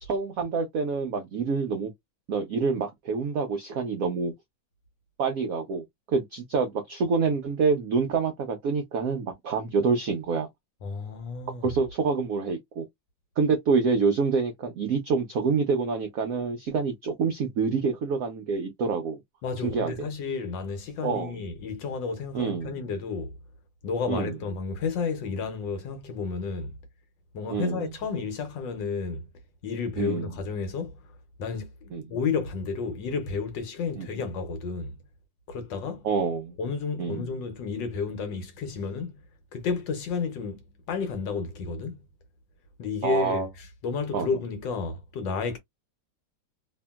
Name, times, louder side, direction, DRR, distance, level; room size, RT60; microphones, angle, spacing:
voice 1, 0.0-1.9 2.3-4.3 5.2-10.5 11.6-12.9 13.4-19.2 19.6-20.1 21.0-21.4 22.3-22.8 24.1-24.3 27.5-27.9 30.0-30.3 31.9-32.0 34.0-34.1 36.0-36.5 37.0-37.3 43.0-43.5 44.1-44.3, right 5 dB, 70° right, 0.8 m, -27 dB
voice 2, 10.8-11.7 19.4-23.4 23.8-26.8 27.3-29.3 29.6-31.1 31.4-35.0 35.5-36.1 36.6-39.2 39.5-40.6 40.9-42.0 42.8-45.6, left 5 dB, 75° left, 1.3 m, -31 dB
2.8 x 2.6 x 2.2 m
omnidirectional pair, 2.1 m